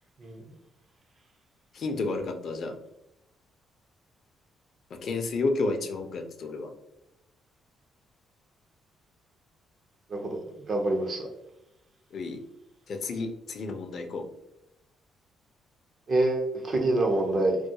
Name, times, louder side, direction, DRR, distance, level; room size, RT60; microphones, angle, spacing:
voice 1, 1.7-2.7 4.9-6.7 12.1-12.4 12.9-14.3, left 3 dB, 60° left, 6 dB, 0.4 m, -31 dB
voice 2, 10.1-11.3 16.1-17.6, right 2 dB, 45° right, 2 dB, 0.6 m, -26 dB
2.3 x 2.2 x 2.7 m, 0.85 s
cardioid pair, 90°, 0 cm